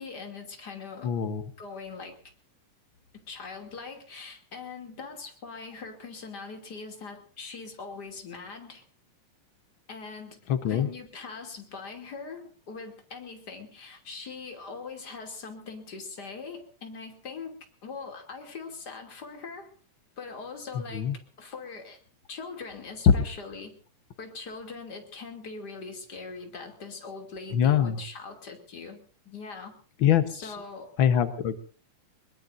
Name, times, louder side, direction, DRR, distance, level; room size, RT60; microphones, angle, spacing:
voice 1, 0.0-1.1 1.6-2.2 3.3-8.8 9.9-10.4 10.6-17.5 17.8-19.7 20.2-21.1 21.4-22.0 22.3-23.7 24.2-29.7 30.3-30.9, left 4 dB, 30° left, 4 dB, 3.0 m, -41 dB
voice 2, 1.0-1.4 10.5-10.9 20.9-21.1 23.1-23.2 27.5-28.0 30.0-30.6 31.0-31.6, left 8 dB, 80° left, 10 dB, 1.1 m, -23 dB
22.5 x 21.5 x 2.6 m, 0.41 s
omnidirectional pair, 3.9 m